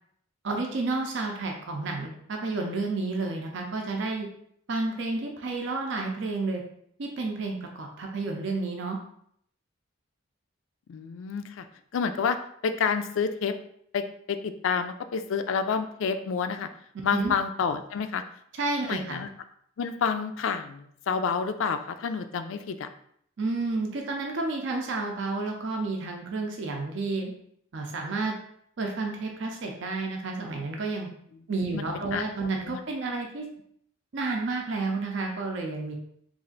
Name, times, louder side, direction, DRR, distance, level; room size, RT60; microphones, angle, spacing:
voice 1, 0.4-4.3 4.7-6.6 7.0-9.0 17.1-17.3 18.5-19.2 23.4-27.3 27.7-28.3 28.8-31.1 31.5-33.5 34.1-35.9, right 3 dB, 60° right, 1 dB, 0.5 m, -31 dB
voice 2, 10.9-11.6 11.9-12.4 12.6-13.6 13.9-16.7 17.0-18.2 18.8-19.3 19.8-22.9 31.7-31.8 32.1-32.2 32.6-32.8, left 6 dB, 70° left, 9 dB, 0.3 m, -29 dB
3.2 x 2.5 x 3.8 m, 0.68 s
head